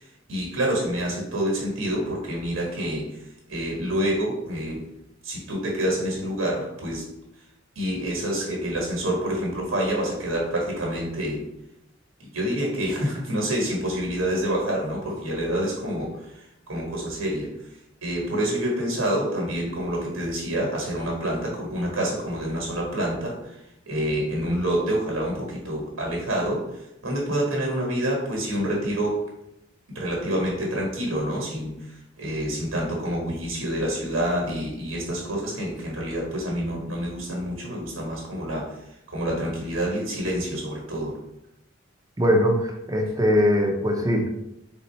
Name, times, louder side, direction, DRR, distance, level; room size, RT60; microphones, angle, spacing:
voice 1, 0.3-3.1 3.5-4.8 5.2-7.0 7.7-11.4 12.2-16.1 16.7-17.5 18.0-23.6 23.8-26.7 27.0-29.2 29.9-38.7 39.1-41.2, right 1 dB, 80° right, -2 dB, 1.4 m, -27 dB
voice 2, 42.2-44.3, equal, 20° right, 2 dB, 0.6 m, -21 dB
3.7 x 2.7 x 4.3 m, 0.85 s
head